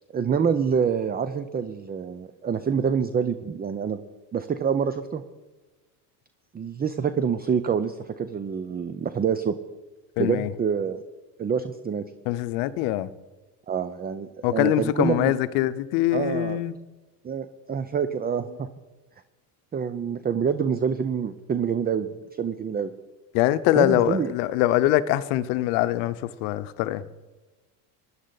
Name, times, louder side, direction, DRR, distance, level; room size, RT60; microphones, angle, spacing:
voice 1, 0.1-4.0 4.3-5.2 6.5-9.5 10.2-11.0 11.4-12.0 13.7-15.3 16.1-16.6 17.2-18.7 19.7-22.9 23.8-24.3, right 7 dB, 20° right, 0.6 m, -26 dB
voice 2, 10.2-10.5 12.3-13.1 14.4-16.7 23.3-27.0, left 14 dB, 70° left, 0.8 m, -23 dB
16.5 x 11.0 x 4.0 m
supercardioid pair, 90°, 49 cm